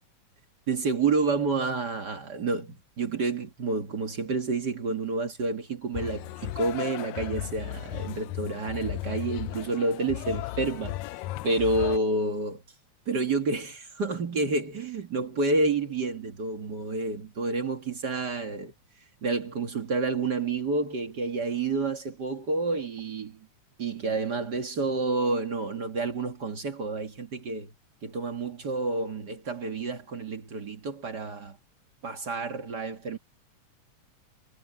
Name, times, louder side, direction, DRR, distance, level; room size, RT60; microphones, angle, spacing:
voice 1, 0.7-11.0 11.4-12.6 13.1-18.7 19.2-23.4 23.8-27.7 28.0-31.6 32.0-33.2, right 3 dB, 40° right, 1.9 m, -29 dB
sound 1, 5.9-12.0, left 16 dB, 80° left, 1.8 m, -35 dB
omnidirectional pair, 3.4 m